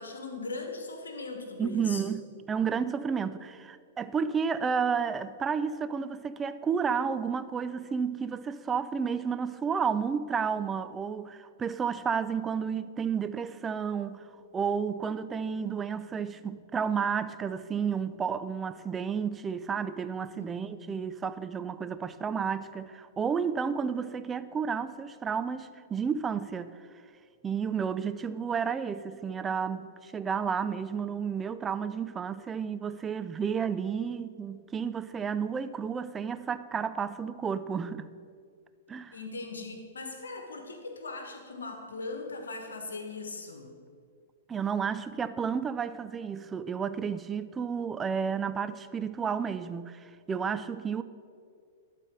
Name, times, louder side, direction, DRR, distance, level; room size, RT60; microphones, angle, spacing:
voice 1, 0.0-2.0 20.3-20.9 39.1-43.7, left 3 dB, 80° left, 1.2 m, -39 dB
voice 2, 1.6-14.3 14.5-26.7 27.4-38.1 38.9-39.2 44.5-51.0, right 6 dB, 20° right, 0.3 m, -31 dB
11.0 x 4.2 x 5.2 m
figure-of-eight pair, 105°, 0 cm